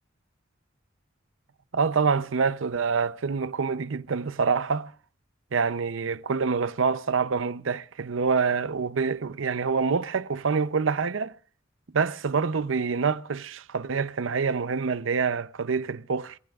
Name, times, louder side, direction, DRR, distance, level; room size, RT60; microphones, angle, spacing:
voice 1, 1.7-4.9 5.5-11.3 11.9-16.4, right 5 dB, 75° right, 0.6 m, -26 dB
28.0 x 15.0 x 2.4 m
head